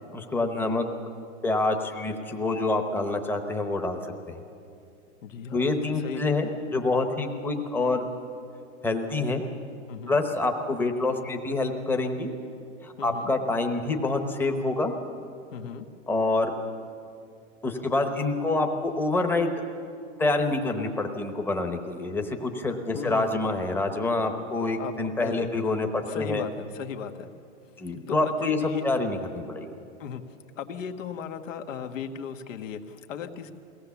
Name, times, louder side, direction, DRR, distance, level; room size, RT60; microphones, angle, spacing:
voice 1, 0.1-0.9 1.4-4.4 5.5-8.1 8.8-9.4 10.1-12.3 12.8-14.9 16.1-16.5 17.6-19.5 20.2-26.4 27.8-28.6 28.8-29.7, left 2 dB, 5° left, 4 dB, 0.9 m, -27 dB
voice 2, 5.2-6.2 9.9-10.2 13.0-13.3 15.5-15.9 22.9-23.3 24.8-24.9 25.2-25.5 26.1-27.3 28.1-28.8 30.0-30.2 30.6-33.5, left 7 dB, 80° left, 7 dB, 1.5 m, -36 dB
22.5 x 18.0 x 7.0 m, 2.5 s
supercardioid pair, 160°, 38 cm